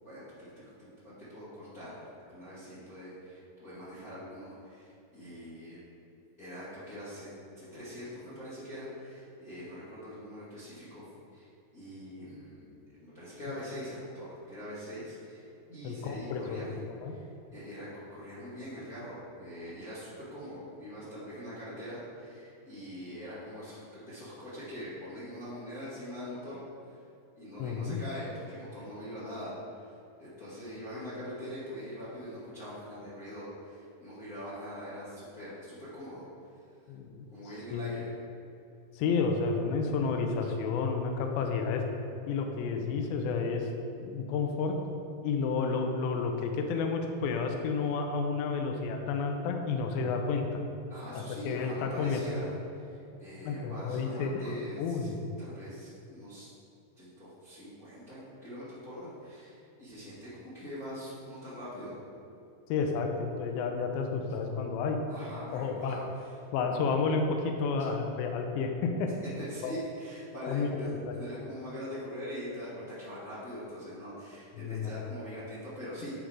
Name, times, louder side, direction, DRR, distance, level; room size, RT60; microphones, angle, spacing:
voice 1, 0.0-5.8 6.4-7.3 7.6-11.0 11.3-17.2 17.5-26.6 26.9-27.0 27.3-29.9 30.2-36.2 37.3-38.1 50.9-52.5 52.8-55.1 55.4-56.5 57.0-61.9 65.1-66.3 69.3-76.1, equal, 55° left, -12 dB, 0.9 m, -43 dB
voice 2, 15.8-16.7 17.0-17.1 27.6-28.0 36.9-37.3 37.7-37.9 39.0-41.8 42.3-43.7 44.0-44.8 45.2-50.6 51.1-52.2 53.4-55.2 62.7-65.0 65.5-66.0 66.5-69.1 69.6-69.7 70.5-70.7 71.1-71.2 74.6-74.9, left 4 dB, 80° left, 4 dB, 2.3 m, -31 dB
9.0 x 3.8 x 4.6 m, 2.7 s
omnidirectional pair, 4.6 m